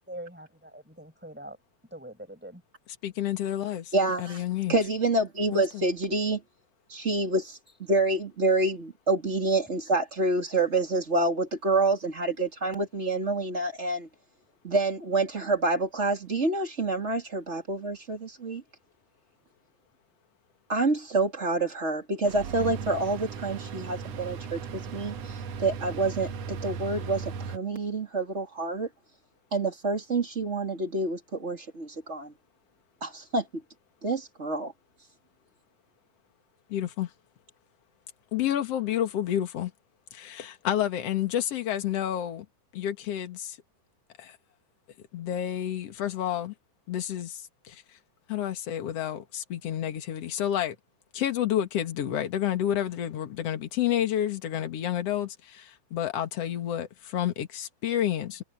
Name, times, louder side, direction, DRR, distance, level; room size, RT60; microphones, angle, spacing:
voice 1, 0.1-1.6 1.9-2.6 7.7-7.8, right 1 dB, 5° right, 6.9 m, -43 dB
voice 2, 3.0-4.7 5.5-5.8 36.7-37.1 38.3-39.7 40.1-42.5 42.7-43.6 44.2-44.4 45.1-46.5 46.9-47.8 48.3-50.8 51.1-58.4, left 11 dB, 50° left, 2.5 m, -30 dB
voice 3, 3.9-4.4 4.7-6.4 6.9-14.1 14.6-18.6 20.7-28.9 29.5-32.3 33.0-33.5 34.0-34.7, right 2 dB, 20° right, 2.8 m, -27 dB
sound 1, 22.2-27.6, right 5 dB, 60° right, 1.9 m, -37 dB
omnidirectional pair, 4.1 m